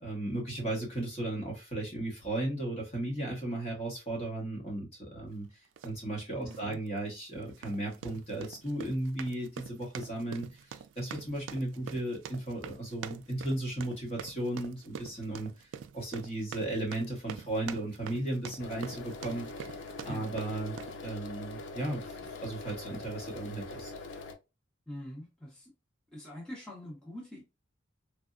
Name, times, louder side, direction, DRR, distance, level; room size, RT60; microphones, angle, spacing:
voice 1, 0.0-5.5 5.8-15.7 15.9-19.5 20.0-20.8 21.0-23.9, right 1 dB, 35° left, -2 dB, 1.1 m, -35 dB
sound 1, 5.8-6.0 6.5-6.7 7.5-21.0, right 7 dB, 80° right, 0.3 m, -45 dB
voice 2, 6.3-6.8 20.1-20.3 24.9-25.7 26.1-27.4, equal, 5° left, -5 dB, 0.9 m, -43 dB
sound 2, 18.6-24.3, left 3 dB, 70° left, 0.5 m, -43 dB
3.3 x 2.0 x 2.4 m, 0.26 s
head